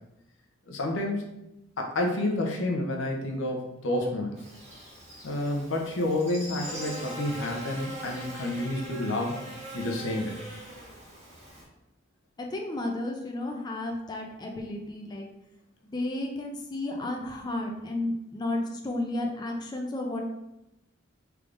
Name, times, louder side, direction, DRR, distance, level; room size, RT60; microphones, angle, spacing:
voice 1, 0.7-1.2 1.8-4.4 5.2-9.4 9.7-10.4, left 1 dB, 80° left, 1 dB, 0.7 m, -29 dB
Buzz, 4.4-11.6, equal, 35° right, 1.3 m, -41 dB
voice 2, 12.4-15.3 15.8-20.2, left 2 dB, 20° left, 1 dB, 0.4 m, -32 dB
3.5 x 3.4 x 2.5 m, 0.88 s
head